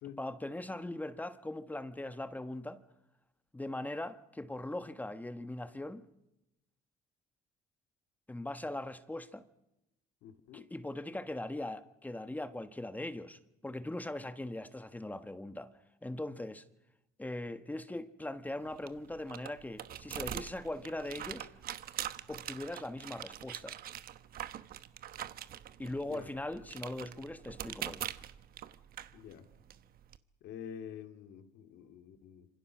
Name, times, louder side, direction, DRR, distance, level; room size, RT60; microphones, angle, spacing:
voice 1, 0.2-2.8 3.5-6.0 8.3-9.4 10.5-15.7 16.0-16.6 17.2-21.5 22.3-23.7 25.8-28.1, left 1 dB, 10° left, 1.3 m, -40 dB
voice 2, 10.2-10.7 26.1-26.3 29.1-29.5 30.4-32.5, left 8 dB, 80° left, 2.3 m, -47 dB
sound 1, 18.4-30.2, right 11 dB, 60° right, 1.1 m, -44 dB
26.5 x 26.0 x 6.2 m
cardioid pair, 110°, 17 cm